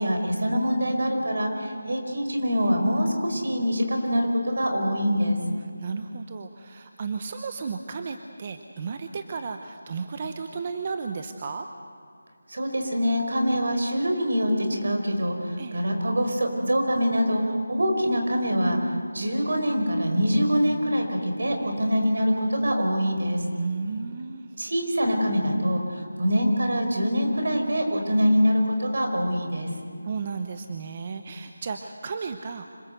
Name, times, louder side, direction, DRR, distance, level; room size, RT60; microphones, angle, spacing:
voice 1, 0.0-5.4 12.5-17.4 17.7-23.4 24.6-29.7, equal, 70° right, 4 dB, 5.1 m, -24 dB
voice 2, 5.6-11.7 15.6-15.8 23.5-24.5 30.0-32.7, right 5 dB, 30° right, 7 dB, 0.9 m, -34 dB
26.5 x 19.5 x 8.0 m, 2.4 s
figure-of-eight pair, 170°, 0 cm